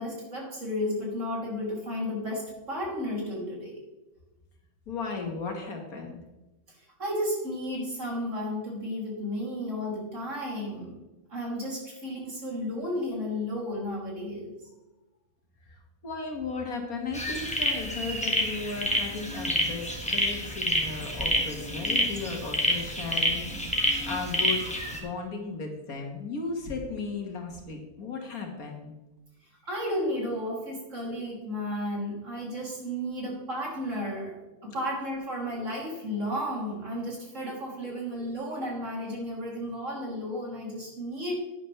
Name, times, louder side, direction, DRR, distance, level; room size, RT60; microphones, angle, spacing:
voice 1, 0.0-3.8 7.0-11.0 11.3-14.5 29.7-34.4 34.6-41.3, left 1 dB, 55° right, -3 dB, 3.5 m, -33 dB
voice 2, 4.9-6.2 15.7-15.8 16.0-24.6 24.9-28.9, left 4 dB, 80° left, 2 dB, 2.2 m, -35 dB
sound 1, 17.1-25.0, equal, 5° left, 1.5 m, -28 dB
11.5 x 9.8 x 3.3 m, 1.0 s
omnidirectional pair, 1.5 m